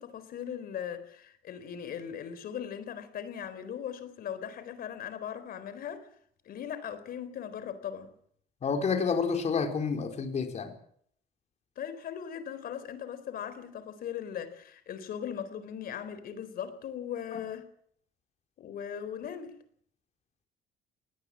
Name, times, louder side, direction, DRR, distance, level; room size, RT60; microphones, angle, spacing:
voice 1, 0.0-6.1 6.4-8.1 11.8-17.7 18.6-19.6, left 8 dB, 60° left, 4.1 m, -39 dB
voice 2, 8.6-10.7 17.3-17.4, left 5 dB, 40° left, 4.2 m, -29 dB
20.0 x 18.0 x 7.6 m
cardioid pair, 110°, 17 cm